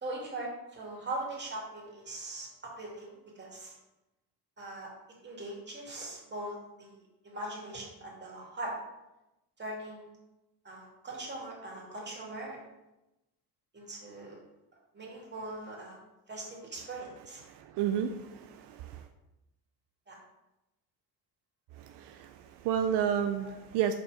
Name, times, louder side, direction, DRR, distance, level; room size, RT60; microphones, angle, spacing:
voice 1, 0.0-3.7 4.6-4.9 5.2-8.7 9.6-10.2 10.6-12.6 13.7-14.4 14.9-16.0 16.3-17.4 20.1-20.2 23.4-23.5, right 2 dB, 25° right, -3 dB, 2.5 m, -41 dB
voice 2, 17.5-19.0 21.8-23.9, right 8 dB, 80° right, 7 dB, 0.6 m, -31 dB
5.4 x 4.5 x 4.9 m, 0.95 s
cardioid pair, 105°, 41 cm